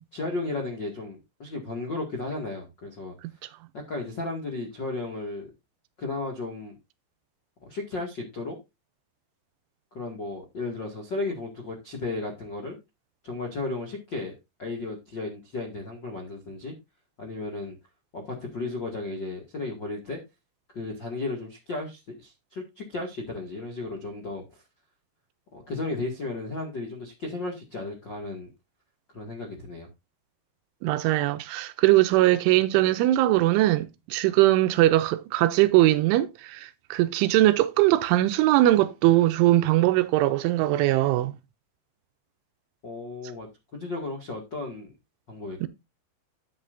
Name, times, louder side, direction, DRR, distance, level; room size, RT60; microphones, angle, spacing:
voice 1, 0.1-3.1 3.7-5.5 6.0-6.7 7.6-8.6 9.9-12.8 13.2-16.7 17.2-17.7 18.1-20.2 20.7-24.4 25.5-28.5 29.1-29.9 42.8-44.9 45.3-45.7, left 2 dB, 55° left, 1.2 m, -34 dB
voice 2, 30.8-41.3 45.6-45.7, right 16 dB, 80° right, 3.0 m, -21 dB
12.0 x 8.3 x 2.6 m
omnidirectional pair, 5.7 m